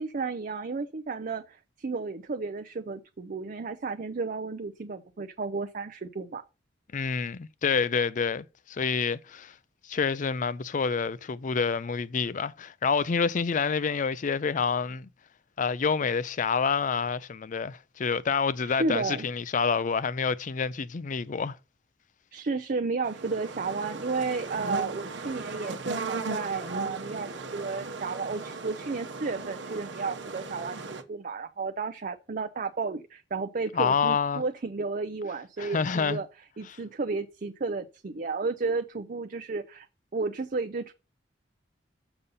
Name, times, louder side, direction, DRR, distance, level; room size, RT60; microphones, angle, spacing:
voice 1, 0.0-6.4 18.7-19.3 22.3-36.3 36.6-39.9 40.1-40.9, right 4 dB, 50° right, 0.5 m, -32 dB
voice 2, 6.9-9.5 9.8-15.1 15.6-21.6 33.7-34.4 35.6-36.2, left 5 dB, 45° left, 0.5 m, -28 dB
sound 1, 23.0-31.0, right 3 dB, 80° right, 1.0 m, -37 dB
6.9 x 5.4 x 5.5 m
head